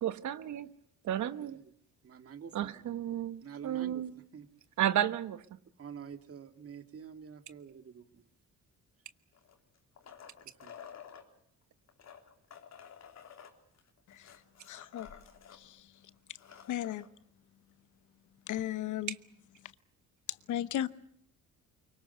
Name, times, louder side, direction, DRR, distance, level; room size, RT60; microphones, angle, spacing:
voice 1, 0.0-0.7 1.0-1.6 2.5-4.1 4.8-5.4 19.1-19.2, right 11 dB, 70° right, 1.3 m, -32 dB
voice 2, 2.0-2.8 3.4-4.0 4.3-4.5 5.8-8.3 10.4-10.8, right 7 dB, 50° right, 2.2 m, -48 dB
sound 1, 9.3-11.2 11.9-15.6 15.9-16.0 16.3-17.1 18.6-18.7, left 8 dB, 60° left, 3.4 m, -52 dB
voice 3, 14.7-15.1 15.6-15.8 16.7-17.0 18.5-19.1 20.5-20.9, left 12 dB, 75° left, 1.0 m, -34 dB
24.5 x 23.5 x 7.0 m
cardioid pair, 90°, 30 cm